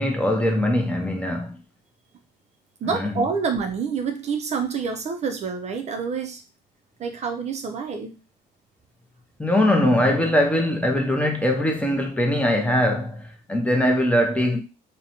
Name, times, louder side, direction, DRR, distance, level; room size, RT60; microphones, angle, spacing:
voice 1, 0.0-1.6 2.9-3.1 9.4-14.6, left 1 dB, 10° left, 0.5 m, -21 dB
voice 2, 2.8-6.4 7.0-8.2, right 5 dB, 40° right, 0.4 m, -27 dB
2.6 x 2.1 x 2.8 m
cardioid pair, 110°, 17 cm